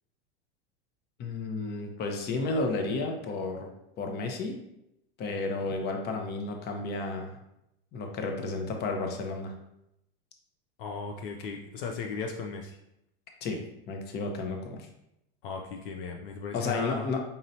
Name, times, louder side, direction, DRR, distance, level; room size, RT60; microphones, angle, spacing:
voice 1, 1.2-3.7 4.0-4.6 5.2-7.4 7.9-9.5 13.4-13.6 13.9-14.9 16.5-17.2, left 3 dB, 35° left, 3 dB, 0.8 m, -32 dB
voice 2, 10.8-12.8 15.4-17.1, left 5 dB, 65° left, 3 dB, 0.6 m, -36 dB
5.4 x 2.9 x 2.7 m, 0.83 s
supercardioid pair, 120°, 29 cm